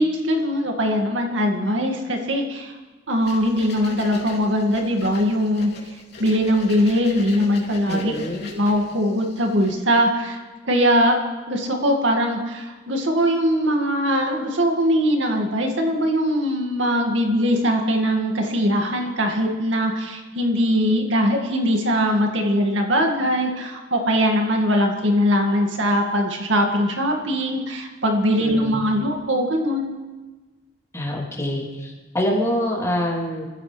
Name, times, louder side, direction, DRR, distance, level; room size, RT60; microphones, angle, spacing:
voice 1, 0.0-2.7 3.1-5.7 6.2-8.1 8.5-10.4 10.7-11.2 11.5-29.9, equal, 80° right, 2 dB, 2.2 m, -21 dB
sound 1, 3.2-9.7, left 3 dB, 60° left, 3.0 m, -41 dB
voice 2, 7.9-8.4 28.4-28.8 30.9-33.5, left 1 dB, 15° left, -3 dB, 3.3 m, -25 dB
27.0 x 15.5 x 3.4 m, 1.3 s
head